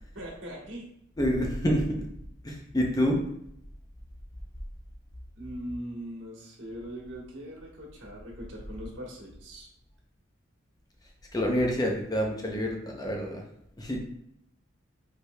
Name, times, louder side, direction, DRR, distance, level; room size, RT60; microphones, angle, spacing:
voice 1, 0.1-0.8 5.4-9.7, equal, 65° right, -1 dB, 1.3 m, -40 dB
voice 2, 1.2-2.0 2.4-3.2 11.3-13.4 13.8-14.0, equal, 20° left, 0 dB, 0.5 m, -27 dB
5.0 x 4.6 x 2.2 m, 0.74 s
head